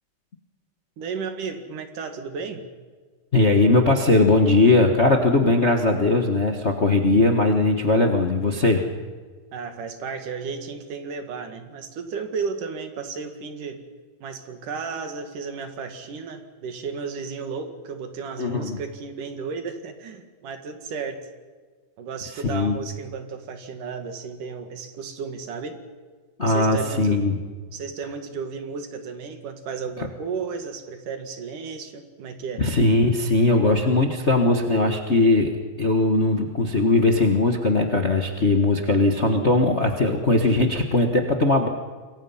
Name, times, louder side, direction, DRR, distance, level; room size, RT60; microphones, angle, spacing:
voice 1, 1.0-2.6 9.5-13.8 14.2-21.2 22.0-25.8 26.4-27.2 27.7-32.6, right 5 dB, 65° right, 7 dB, 3.5 m, -33 dB
voice 2, 3.3-8.8 18.4-18.8 22.5-22.8 26.4-27.4 32.6-41.7, left 2 dB, 70° left, 4 dB, 0.6 m, -19 dB
27.5 x 22.5 x 5.7 m, 1.5 s
omnidirectional pair, 4.0 m